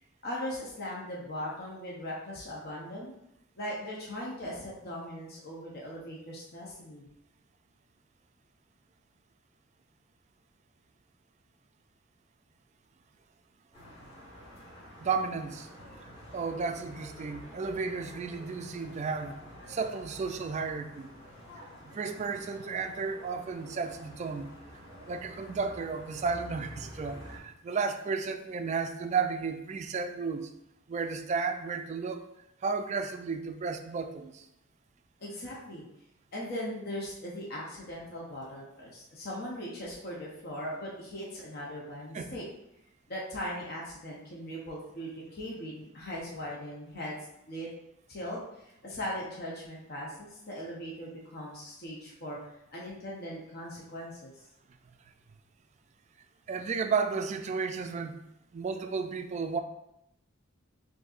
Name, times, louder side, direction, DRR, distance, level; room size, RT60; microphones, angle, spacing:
voice 1, 0.2-3.2 3.6-7.1 35.2-35.9 36.3-42.4 43.1-47.2 47.5-47.7 48.1-52.4 52.7-54.3, equal, 50° left, -4 dB, 0.8 m, -39 dB
sound 1, 13.7-27.4, equal, 30° left, 1.6 m, -49 dB
voice 2, 15.0-15.7 16.3-19.4 19.7-21.1 21.9-24.5 25.1-30.5 30.9-32.2 32.6-34.5 42.1-42.3 56.5-58.2 58.5-59.6, right 5 dB, 35° right, 7 dB, 0.3 m, -33 dB
6.4 x 2.7 x 2.4 m, 0.83 s
head